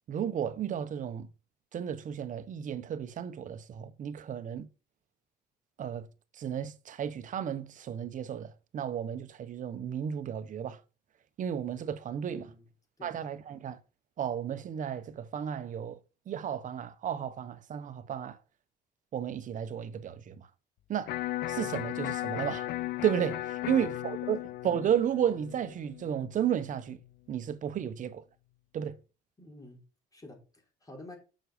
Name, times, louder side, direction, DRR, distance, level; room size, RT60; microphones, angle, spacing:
voice 1, 0.1-1.3 1.7-4.7 5.8-6.1 6.4-10.8 11.4-12.4 13.0-13.8 14.2-16.0 16.3-18.4 19.1-20.5 20.9-21.1 21.5-22.7 23.0-27.0 27.3-28.2 28.7-29.0, right 9 dB, 50° right, 1.0 m, -33 dB
voice 2, 12.3-12.7 13.0-13.2 23.6-24.4 29.4-29.8 30.1-31.2, left 2 dB, 20° left, 4.4 m, -50 dB
Electric guitar, 21.1-27.1, left 15 dB, 75° left, 0.5 m, -36 dB
7.7 x 6.3 x 5.1 m
cardioid pair, 110°, 17 cm